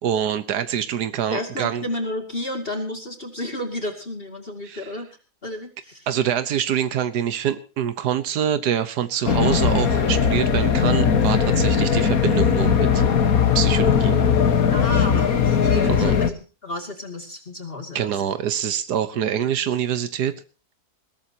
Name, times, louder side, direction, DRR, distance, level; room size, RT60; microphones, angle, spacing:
voice 1, 0.0-1.8 4.6-4.9 6.1-13.0 13.5-14.2 15.9-16.2 17.9-20.4, right 9 dB, 90° right, 12 dB, 1.6 m, -25 dB
voice 2, 1.3-5.1 5.4-6.1 14.7-18.2, left 1 dB, 35° left, 5 dB, 2.7 m, -32 dB
sound 1, 9.2-16.3, left 7 dB, 65° left, 1.9 m, -19 dB
21.0 x 18.5 x 2.9 m, 0.35 s
omnidirectional pair, 1.7 m